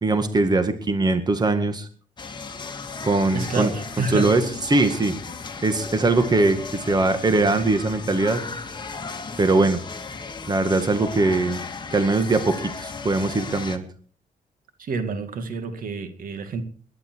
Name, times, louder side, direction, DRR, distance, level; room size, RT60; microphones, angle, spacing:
voice 1, 0.0-1.9 3.0-3.7 4.1-4.4 4.7-5.2 5.6-8.4 9.4-9.8 10.5-11.6 11.9-13.8, right 3 dB, 25° right, 2.0 m, -21 dB
sound 1, 2.2-13.8, left 4 dB, 30° left, 2.0 m, -35 dB
voice 2, 3.3-4.3 14.8-16.6, right 3 dB, 65° right, 2.4 m, -28 dB
21.5 x 11.0 x 4.7 m
cardioid pair, 110°, 15 cm